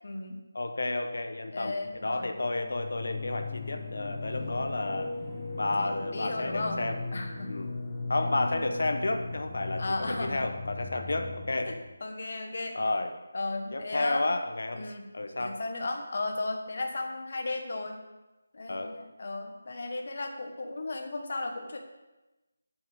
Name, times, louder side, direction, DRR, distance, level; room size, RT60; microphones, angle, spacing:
voice 1, 0.0-0.3 1.5-2.3 5.8-6.8 7.1-7.5 9.8-10.4 11.7-12.8 13.3-14.3 14.7-15.0 15.4-18.0 18.5-21.8, left 2 dB, 40° left, 4 dB, 1.4 m, -35 dB
voice 2, 0.5-5.1 5.6-7.0 7.4-7.7 8.1-11.8 12.7-13.1 13.7-15.6 18.7-18.9, left 2 dB, 60° left, 6 dB, 0.9 m, -31 dB
sound 1, 1.8-11.8, left 3 dB, 20° left, 1.0 m, -38 dB
17.5 x 7.3 x 3.6 m, 1.1 s
figure-of-eight pair, 180°, 0 cm